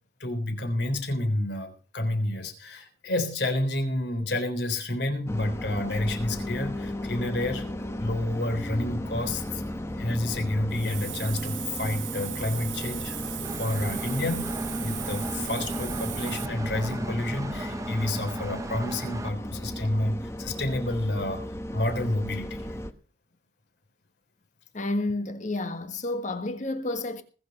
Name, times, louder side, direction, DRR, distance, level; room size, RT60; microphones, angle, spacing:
voice 1, 0.2-7.6 8.0-9.6 10.0-22.8, left 1 dB, 60° left, 3.7 m, -30 dB
sound 1, 5.3-22.9, left 1 dB, 15° left, 1.0 m, -35 dB
Hiss, 10.7-16.5, right 16 dB, 70° right, 0.8 m, -38 dB
Engine, 13.4-19.3, right 1 dB, 15° right, 0.7 m, -37 dB
voice 2, 24.7-27.2, left 2 dB, 40° left, 1.5 m, -30 dB
20.0 x 6.8 x 5.8 m
head